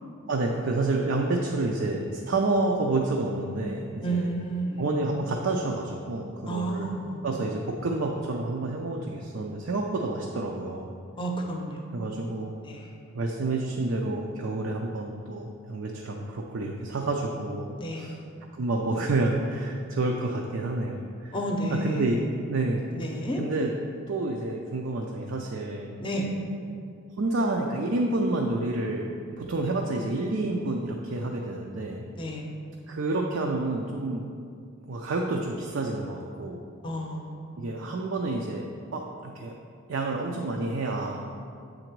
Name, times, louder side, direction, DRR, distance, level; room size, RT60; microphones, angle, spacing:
voice 1, 0.3-4.3 4.8-7.0 7.2-10.9 11.9-12.5 13.1-18.2 18.6-21.4 21.7-22.8 23.4-23.7 24.1-26.3 27.2-32.0 32.9-34.3 34.9-36.6 37.6-39.5 39.9-41.4, right 2 dB, 60° right, 0 dB, 0.5 m, -29 dB
voice 2, 4.0-4.8 6.5-7.3 11.2-11.8 12.6-12.9 17.8-18.1 21.3-22.1 22.9-23.4 26.0-26.3 32.2-32.5 36.8-37.6, right 1 dB, 25° left, 1 dB, 0.6 m, -31 dB
7.9 x 3.9 x 4.6 m, 2.3 s
head